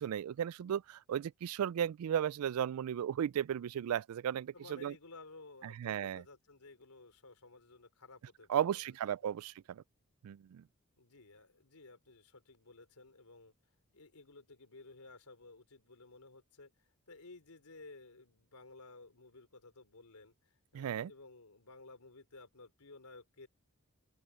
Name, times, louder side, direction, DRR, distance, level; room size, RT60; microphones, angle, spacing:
voice 1, 0.0-4.9 5.8-6.2 8.5-9.8 10.2-10.6 20.7-21.1, right 9 dB, 75° right, 0.3 m, -35 dB
voice 2, 4.5-8.8 11.0-13.5 13.9-23.5, left 3 dB, 85° left, 3.4 m, -55 dB
open air
head